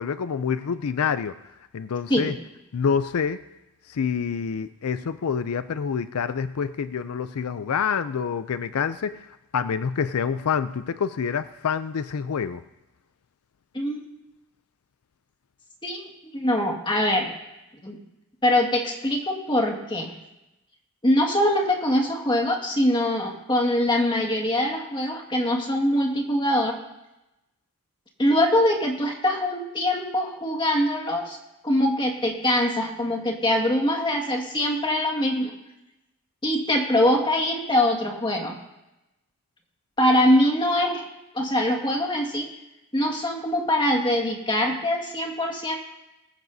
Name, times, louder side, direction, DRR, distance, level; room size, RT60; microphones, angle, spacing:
voice 1, 0.0-1.4 1.7-2.3 2.7-3.4 3.9-9.2 9.5-12.6, left 6 dB, 80° left, 12 dB, 0.4 m, -27 dB
voice 2, 16.3-17.3 17.8-18.0 18.4-20.1 21.0-26.7 28.2-31.4 31.6-35.5 36.4-38.6 40.0-41.0 41.3-42.5 42.9-45.8, left 1 dB, 20° left, 1 dB, 1.9 m, -23 dB
19.5 x 15.0 x 2.7 m, 0.97 s
head